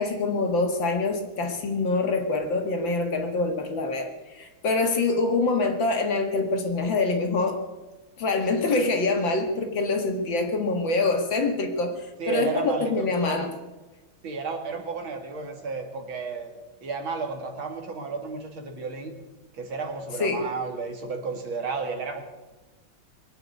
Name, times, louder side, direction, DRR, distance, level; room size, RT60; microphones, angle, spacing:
voice 1, 0.0-7.6 8.2-13.5 20.2-20.5, left 3 dB, 60° left, 4 dB, 2.5 m, -25 dB
voice 2, 12.2-13.5 14.2-19.1 19.5-22.2, right 4 dB, 65° right, 4 dB, 2.8 m, -33 dB
22.0 x 7.9 x 8.3 m, 1.2 s
omnidirectional pair, 2.4 m